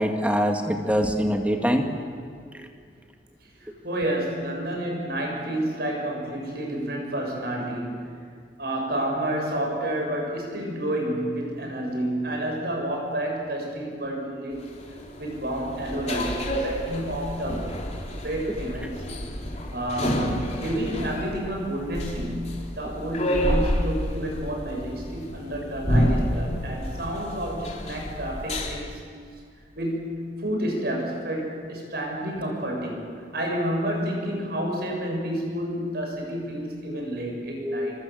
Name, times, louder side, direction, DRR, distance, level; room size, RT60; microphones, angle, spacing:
voice 1, 0.0-1.9 37.6-38.0, equal, 10° right, 4 dB, 2.1 m, -24 dB
voice 2, 3.5-8.2 8.6-14.7 15.2-17.7 18.2-19.0 19.7-29.0 29.8-38.0, right 1 dB, 60° right, 0 dB, 7.6 m, -30 dB
sound 1, 14.5-28.7, equal, 40° left, 4.0 m, -29 dB
28.0 x 23.5 x 7.9 m, 2.2 s
head